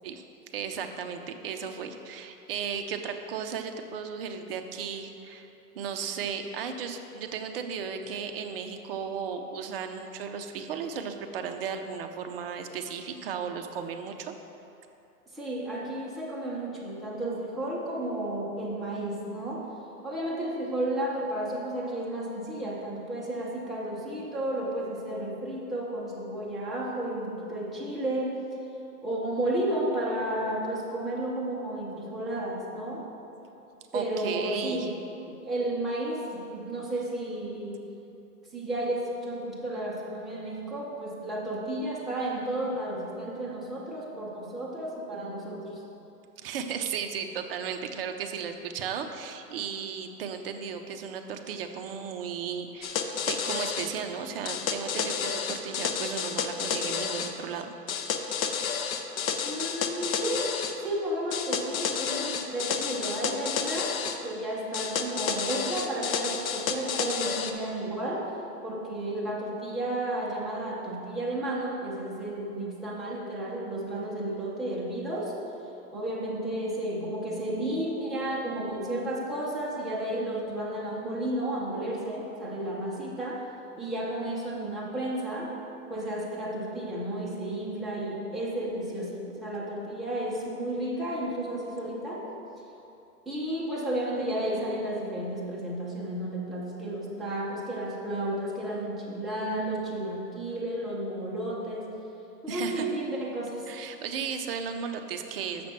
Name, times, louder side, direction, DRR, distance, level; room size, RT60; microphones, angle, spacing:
voice 1, 0.5-5.5 5.7-14.3 33.9-34.9 46.4-57.7 102.5-102.8 103.7-105.7, right 6 dB, 40° right, 6 dB, 0.6 m, -35 dB
voice 2, 15.3-19.7 20.0-28.4 29.0-33.1 33.9-34.9 35.3-37.8 38.5-45.8 59.4-63.9 64.2-68.3 68.6-75.4 75.9-83.5 83.8-85.5 85.9-92.3 93.3-101.9 102.4-103.7, right 1 dB, ahead, -7 dB, 0.7 m, -32 dB
sound 1, 52.8-53.9 54.5-57.3 57.9-60.8 61.3-64.2 64.7-67.5, left 6 dB, 60° left, 0.8 m, -31 dB
6.7 x 5.9 x 5.9 m, 2.9 s
hypercardioid pair, 140°, 48 cm